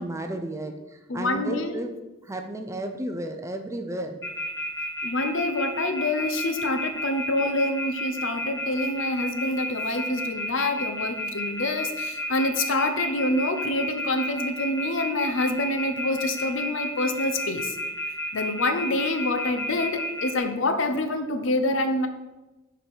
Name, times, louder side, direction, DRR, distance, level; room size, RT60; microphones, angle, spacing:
voice 1, 0.0-1.9 2.2-4.2, right 1 dB, 15° right, 5 dB, 0.5 m, -33 dB
voice 2, 1.1-1.8 5.0-17.8 18.3-22.1, left 2 dB, 65° left, 8 dB, 0.7 m, -26 dB
sound 1, 4.2-20.4, left 1 dB, 15° left, 1.5 m, -31 dB
5.7 x 4.9 x 5.4 m, 1.1 s
head